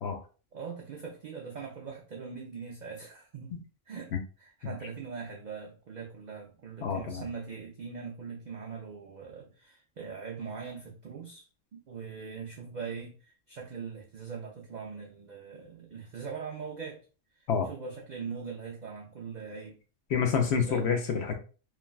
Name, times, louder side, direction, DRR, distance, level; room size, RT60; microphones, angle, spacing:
voice 1, 0.5-3.6 3.9-11.5 11.7-17.0 17.4-19.8 20.6-20.9, right 5 dB, 70° right, 0.4 m, -41 dB
voice 2, 6.8-7.2 17.5-17.7 20.1-21.3, left 6 dB, 65° left, 0.8 m, -28 dB
3.2 x 2.1 x 2.2 m
omnidirectional pair, 1.3 m